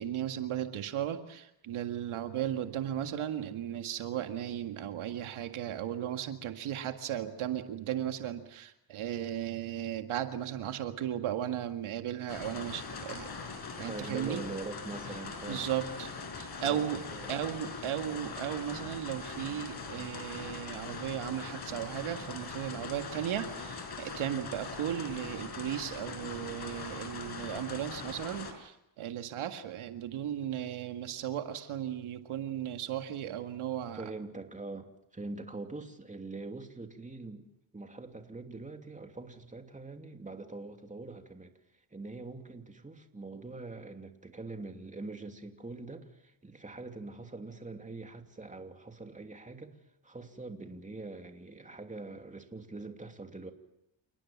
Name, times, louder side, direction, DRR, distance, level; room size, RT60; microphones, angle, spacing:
voice 1, 0.0-13.3 13.8-14.4 15.5-16.1 16.4-17.0 17.3-34.0, right 10 dB, 80° right, 2.0 m, -36 dB
sound 1, 12.3-28.5, left 4 dB, 50° left, 5.5 m, -42 dB
voice 2, 13.9-15.7 16.6-17.4 33.9-37.5 37.7-41.5 41.9-49.7 50.0-53.5, right 3 dB, 15° right, 2.8 m, -43 dB
29.0 x 18.5 x 7.3 m
cardioid pair, 90°, 49 cm